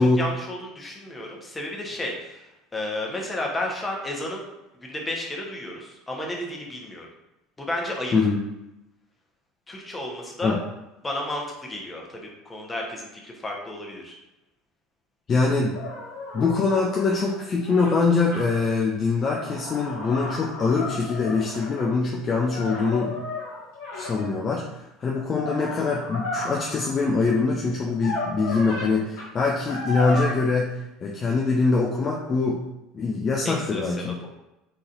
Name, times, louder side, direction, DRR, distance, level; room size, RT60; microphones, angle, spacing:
voice 1, 0.0-4.5 4.8-7.1 7.6-8.1 9.7-10.6 11.0-14.2 33.4-34.3, left 1 dB, 15° left, -1 dB, 1.1 m, -32 dB
voice 2, 15.3-15.8 16.3-23.2 24.0-24.7 25.0-32.6 32.9-34.2, left 4 dB, 30° left, -1 dB, 0.5 m, -23 dB
sound 1, 15.7-18.4 19.1-21.9 22.4-24.5 25.2-26.9 27.9-28.9 29.2-29.3 29.7-30.2, left 2 dB, 55° left, 1.2 m, -34 dB
4.3 x 3.8 x 2.6 m, 0.96 s
figure-of-eight pair, 65°, 0 cm